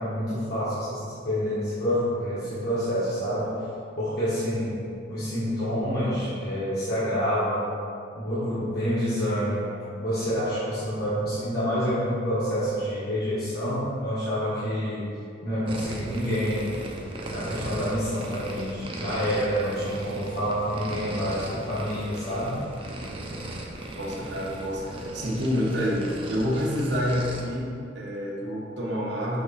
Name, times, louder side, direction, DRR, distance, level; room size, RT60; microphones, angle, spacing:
voice 1, 0.0-3.5 4.0-4.8 5.1-7.7 8.1-15.1 15.4-16.7 17.3-22.6, equal, 55° left, -11 dB, 1.4 m, -28 dB
sound 1, 15.7-27.4, right 1 dB, 30° right, 0.6 m, -37 dB
voice 2, 24.0-29.4, equal, 75° right, -5 dB, 1.2 m, -28 dB
6.3 x 3.6 x 4.2 m, 2.4 s
head